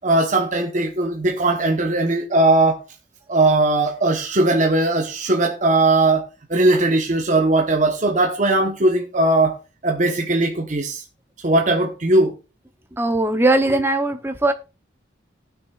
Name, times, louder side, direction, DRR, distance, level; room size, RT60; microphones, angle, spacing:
voice 1, 0.0-2.8 3.3-9.6 9.8-11.0 11.4-12.3, right 2 dB, 40° right, 1.0 m, -19 dB
voice 2, 13.0-14.5, right 2 dB, 10° right, 0.7 m, -19 dB
18.5 x 6.3 x 2.4 m
head